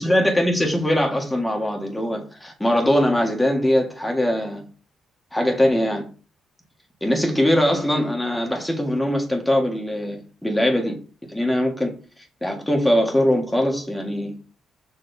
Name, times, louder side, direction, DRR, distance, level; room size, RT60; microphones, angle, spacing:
voice 1, 0.0-4.6 5.3-6.1 7.0-10.9 11.3-11.9 12.4-14.3, left 1 dB, 5° left, 1.8 m, -21 dB
6.1 x 4.6 x 3.5 m
cardioid pair, 90°, 0 cm